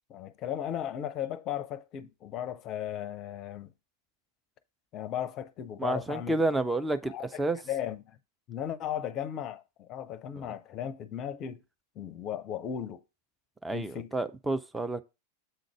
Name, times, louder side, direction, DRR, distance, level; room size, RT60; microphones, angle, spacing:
voice 1, 0.1-3.7 4.9-6.4 7.1-7.3 7.7-8.2 8.5-11.6 12.0-13.0 13.7-14.1, left 10 dB, 35° left, 0.6 m, -36 dB
voice 2, 5.8-7.6 10.4-10.5 13.6-15.0, right 2 dB, 5° right, 0.5 m, -30 dB
8.0 x 3.9 x 4.5 m
figure-of-eight pair, 90°, 0 cm